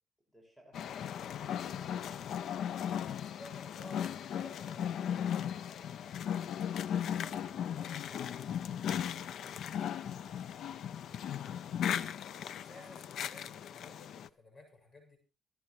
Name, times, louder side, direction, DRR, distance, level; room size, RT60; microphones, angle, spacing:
voice 1, 0.3-2.5 6.9-10.4, equal, 10° left, -1 dB, 6.0 m, -60 dB
sound 1, 0.7-14.3, left 9 dB, 80° left, 0.7 m, -37 dB
voice 2, 3.3-5.6 12.2-15.2, left 2 dB, 40° left, 3 dB, 7.8 m, -54 dB
27.5 x 10.0 x 3.2 m, 0.33 s
cardioid pair, 140°, 0 cm